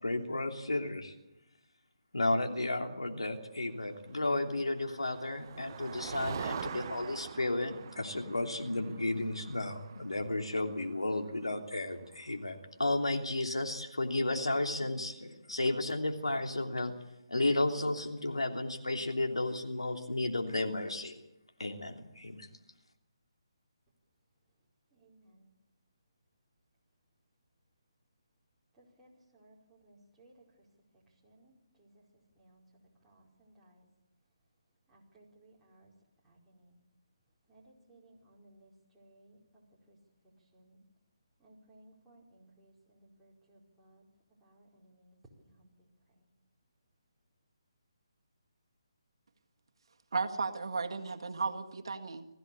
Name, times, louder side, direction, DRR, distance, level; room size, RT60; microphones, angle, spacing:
voice 1, 0.0-1.1 2.1-16.9 17.3-21.2 21.6-22.5, left 2 dB, 90° left, 3 dB, 3.1 m, -33 dB
Motor vehicle (road), 4.3-12.1, right 7 dB, 40° right, 0.8 m, -45 dB
voice 2, 24.9-25.5 28.7-30.4 31.2-32.0 32.3-32.6 33.0-33.9 34.9-35.9 36.2-36.8 37.5-40.0 40.5-40.8 41.4-44.1 44.4-46.3, right 1 dB, 5° right, -6 dB, 4.9 m, -62 dB
voice 3, 50.1-52.3, right 4 dB, 60° right, 4 dB, 1.8 m, -35 dB
21.0 x 15.5 x 8.5 m, 0.92 s
figure-of-eight pair, 150°, 3 cm